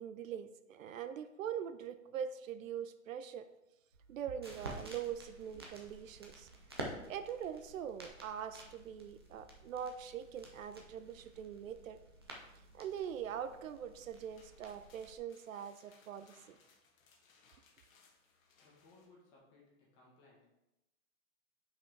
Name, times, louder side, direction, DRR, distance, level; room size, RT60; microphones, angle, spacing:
voice 1, 0.0-3.4 4.1-6.5 6.8-12.0 12.7-16.6, right 8 dB, 70° right, 10 dB, 0.6 m, -43 dB
sound 1, 3.9-15.2, right 1 dB, 20° right, 0.3 m, -51 dB
sound 2, 13.8-19.1, left 4 dB, 75° left, 1.4 m, -67 dB
voice 2, 18.6-20.4, left 3 dB, 25° left, -4 dB, 1.7 m, -63 dB
5.8 x 4.9 x 4.6 m, 0.92 s
hypercardioid pair, 165°, 41 cm